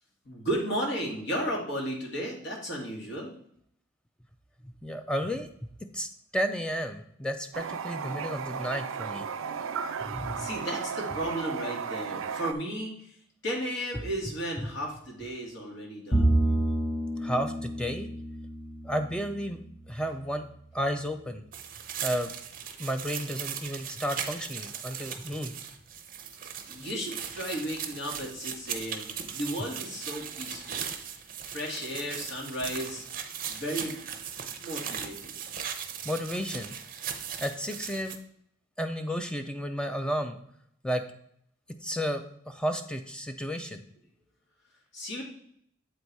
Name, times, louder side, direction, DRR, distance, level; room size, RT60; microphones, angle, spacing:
voice 1, 0.3-3.3 10.4-13.1 13.4-16.3 26.7-30.9 31.4-33.0 33.5-34.0 34.6-35.4 44.9-45.2, equal, 60° left, -1 dB, 1.9 m, -34 dB
voice 2, 4.6-9.3 10.1-10.5 14.6-14.7 17.2-18.1 18.8-19.6 19.9-20.4 20.7-21.4 22.0-22.3 22.8-25.5 36.0-36.7 37.4-38.2 38.8-40.4 40.8-41.0 41.8-43.8, equal, 5° left, 6 dB, 0.4 m, -32 dB
Toilet flush, 7.5-12.5, right 6 dB, 85° right, 0.4 m, -34 dB
Bowed string instrument, 16.1-19.6, right 1 dB, 20° left, 0.8 m, -28 dB
sound 1, 21.5-38.2, right 8 dB, 45° right, 0.7 m, -38 dB
7.7 x 4.1 x 4.6 m, 0.66 s
head